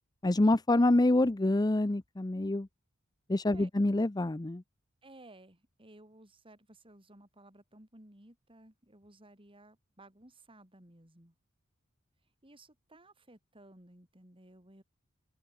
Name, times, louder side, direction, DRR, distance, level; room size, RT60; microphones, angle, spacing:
voice 1, 0.2-2.7 3.3-4.6, left 2 dB, 20° left, 0.6 m, -26 dB
voice 2, 5.0-11.3 12.4-14.8, right 1 dB, 25° right, 4.4 m, -57 dB
open air
head